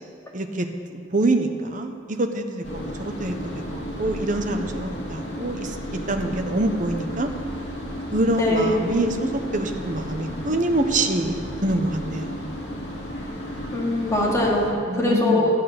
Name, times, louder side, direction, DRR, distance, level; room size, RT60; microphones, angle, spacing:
voice 1, 0.3-0.7 1.1-5.8 6.1-7.3 8.1-12.5 14.9-15.4, right 2 dB, 45° right, 5 dB, 1.0 m, -25 dB
sound 1, 2.6-14.7, equal, 75° left, 2.4 m, -33 dB
voice 2, 8.4-8.7 13.7-15.5, left 2 dB, 15° left, -4 dB, 2.5 m, -22 dB
13.5 x 8.5 x 6.7 m, 2.3 s
head